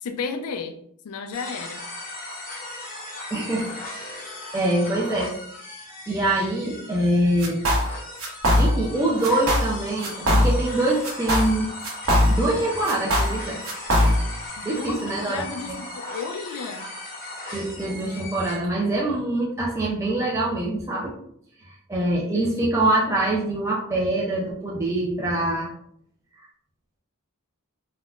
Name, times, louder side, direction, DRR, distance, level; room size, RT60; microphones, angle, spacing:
voice 1, 0.0-0.8 1.0-1.8 14.6-16.9, left 5 dB, 90° left, 7 dB, 0.3 m, -33 dB
sound 1, 1.3-18.6, left 1 dB, 40° left, 0.7 m, -38 dB
voice 2, 3.3-3.7 4.5-5.4 6.1-7.6 8.6-11.7 12.3-13.6 14.6-15.7 17.5-21.1 21.9-25.7, right 1 dB, 15° right, -5 dB, 0.4 m, -24 dB
sound 2, 7.4-7.9 8.2-8.9 9.2-9.7 10.0-10.7 11.0-12.6 12.8-14.4, left 1 dB, 70° right, 1.0 m, -21 dB
3.5 x 2.1 x 2.3 m, 0.67 s
head